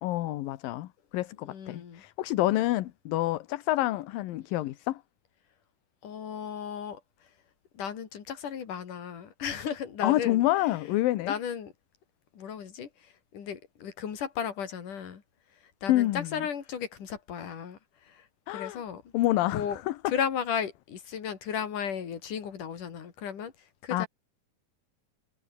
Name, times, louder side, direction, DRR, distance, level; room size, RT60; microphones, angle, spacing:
voice 1, 0.0-5.0 10.0-11.3 15.9-16.4 18.5-18.8 19.1-20.1 23.9-24.1, left 16 dB, 75° left, 2.7 m, -28 dB
voice 2, 1.4-2.0 6.0-7.0 7.7-10.4 11.3-11.7 12.4-12.9 13.3-15.2 15.8-17.8 18.5-19.0 19.5-19.8 20.1-23.5 23.8-24.1, left 8 dB, 60° left, 4.3 m, -34 dB
omnidirectional pair, 4.2 m